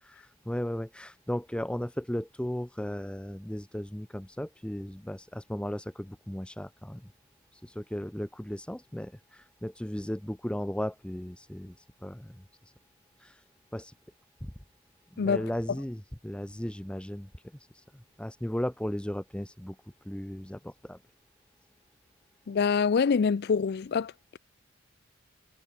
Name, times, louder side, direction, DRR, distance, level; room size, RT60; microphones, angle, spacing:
voice 1, 0.0-7.0 7.5-12.4 13.2-13.4 13.7-13.9 14.4-14.5 15.1-17.3 17.7-19.8 20.0-21.0, equal, 5° left, 0.7 m, -36 dB
voice 2, 22.5-24.4, left 5 dB, 55° left, 0.4 m, -26 dB
head